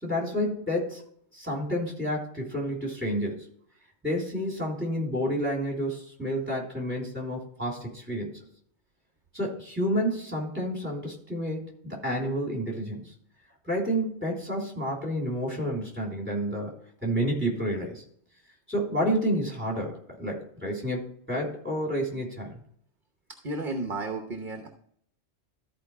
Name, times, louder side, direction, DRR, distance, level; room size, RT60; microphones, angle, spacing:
voice 1, 0.0-1.0 1.3-3.4 4.0-8.4 9.3-13.1 13.6-16.7 17.0-18.0 18.7-22.6, equal, 10° right, -2 dB, 3.3 m, -30 dB
voice 2, 23.4-24.7, right 2 dB, 45° right, 4 dB, 1.1 m, -32 dB
13.5 x 4.8 x 4.5 m, 0.63 s
omnidirectional pair, 1.2 m